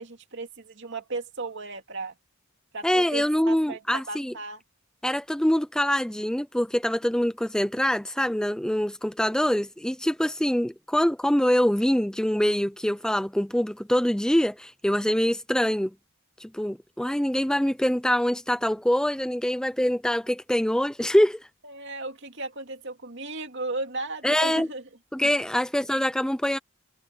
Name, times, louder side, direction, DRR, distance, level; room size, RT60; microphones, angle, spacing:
voice 1, 0.0-2.1 2.7-4.6 21.6-24.8, right 3 dB, 60° right, 2.6 m, -35 dB
voice 2, 2.8-4.3 5.0-15.9 16.4-21.5 24.2-24.7 25.1-26.6, equal, 5° left, 0.5 m, -24 dB
head